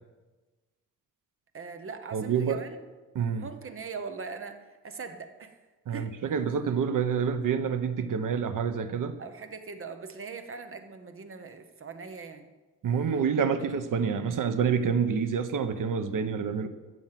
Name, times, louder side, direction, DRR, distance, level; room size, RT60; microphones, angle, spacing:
voice 1, 1.5-2.8 3.4-5.6 5.9-6.1 9.2-12.5, right 5 dB, 45° right, 8 dB, 1.0 m, -41 dB
voice 2, 2.1-2.6 3.1-3.4 5.9-9.2 12.8-16.7, right 6 dB, 90° right, 10 dB, 0.9 m, -27 dB
14.0 x 7.2 x 5.9 m, 1.2 s
wide cardioid pair, 155°, 31 cm